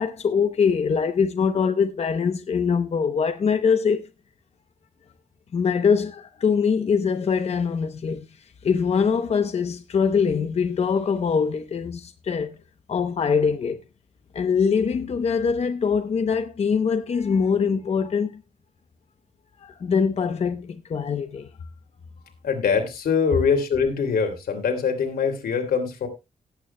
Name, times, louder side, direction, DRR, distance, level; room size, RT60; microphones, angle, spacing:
voice 1, 0.0-4.1 5.5-8.2 8.6-12.5 12.9-13.8 14.3-18.4 19.6-21.5, left 6 dB, 45° left, 0.8 m, -23 dB
voice 2, 22.4-26.1, left 6 dB, 90° left, 2.9 m, -23 dB
18.0 x 9.1 x 2.2 m
wide cardioid pair, 165°, 15 cm